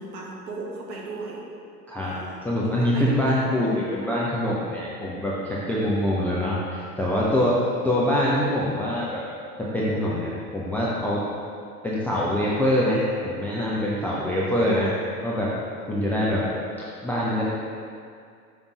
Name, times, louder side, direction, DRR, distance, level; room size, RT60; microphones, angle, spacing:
voice 1, 0.0-1.5 2.0-3.5, right 3 dB, 45° right, -2 dB, 1.4 m, -37 dB
voice 2, 2.4-9.2 9.6-11.3 11.8-14.9 15.2-15.5 15.9-16.5 16.8-17.5, left 1 dB, 5° left, -7 dB, 0.4 m, -24 dB
6.4 x 5.1 x 3.9 m, 2.3 s
figure-of-eight pair, 80°, 48 cm